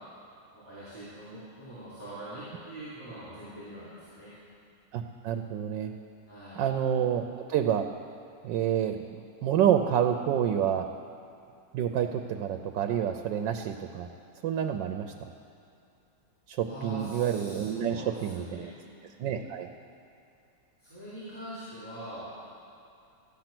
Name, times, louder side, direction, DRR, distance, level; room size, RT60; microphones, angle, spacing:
voice 1, 0.5-4.3 6.3-6.6 16.6-18.7 20.8-22.3, right 1 dB, 5° left, -13 dB, 3.9 m, -43 dB
voice 2, 4.9-5.9 6.6-7.8 8.4-10.9 11.7-14.1 14.4-15.3 16.5-18.7 19.2-19.7, right 9 dB, 85° right, 6 dB, 1.3 m, -28 dB
14.5 x 9.2 x 6.0 m, 2.6 s
omnidirectional pair, 1.9 m